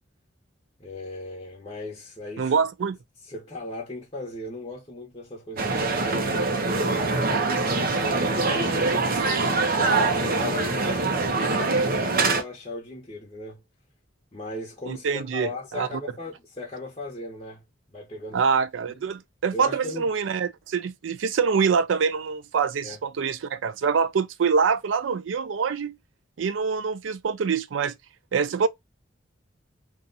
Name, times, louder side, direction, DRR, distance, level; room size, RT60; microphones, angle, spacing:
voice 1, 0.8-2.5 3.3-9.0 9.6-13.6 14.3-17.6 17.9-18.4 18.9-19.0 19.5-20.1 22.8-23.0, left 2 dB, 30° left, 1.0 m, -38 dB
voice 2, 2.4-3.0 14.9-15.9 18.3-25.9 26.4-27.9 28.3-28.7, right 5 dB, 80° right, 0.4 m, -25 dB
sound 1, 5.6-12.4, right 3 dB, 50° right, 0.7 m, -24 dB
2.7 x 2.4 x 3.9 m
head